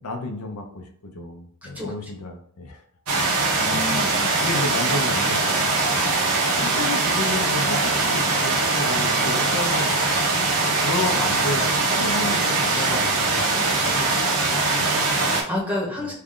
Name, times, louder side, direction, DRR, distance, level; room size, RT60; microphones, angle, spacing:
voice 1, 0.0-2.8 3.6-3.9 4.4-6.1 6.6-10.0 10.8-13.9 16.0-16.1, left 2 dB, 85° left, 4 dB, 0.7 m, -32 dB
voice 2, 1.6-1.9 3.6-4.2 14.5-16.1, left 1 dB, 5° right, -2 dB, 0.8 m, -31 dB
sound 1, 3.1-15.4, right 3 dB, 80° right, 0.9 m, -22 dB
3.3 x 2.4 x 3.6 m, 0.62 s
head